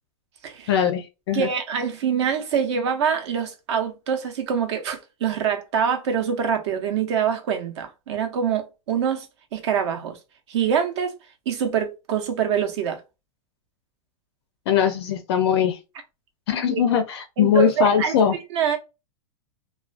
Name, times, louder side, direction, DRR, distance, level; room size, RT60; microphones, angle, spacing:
voice 1, 0.7-1.5 14.7-15.8 16.5-18.4, left 8 dB, 45° left, 0.4 m, -21 dB
voice 2, 1.3-9.3 9.5-10.2 10.5-11.1 11.5-13.0 16.7-16.8 17.4-18.2 18.5-18.8, right 7 dB, 50° right, 0.7 m, -25 dB
2.3 x 2.2 x 2.4 m
supercardioid pair, 170°, 19 cm